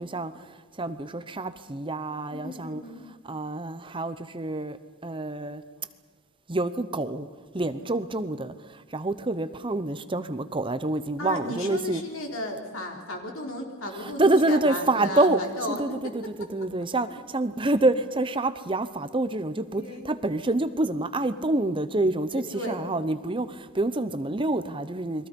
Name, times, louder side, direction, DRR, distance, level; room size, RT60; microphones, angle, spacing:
voice 1, 0.0-2.8 3.2-4.8 5.0-5.6 6.5-7.3 7.5-12.0 13.9-15.4 15.7-25.3, right 2 dB, 25° right, 0.8 m, -27 dB
voice 2, 2.3-3.1 7.9-8.0 11.2-16.1 19.8-20.0 22.3-22.9, left 1 dB, 70° left, 4.0 m, -34 dB
30.0 x 22.5 x 5.4 m
head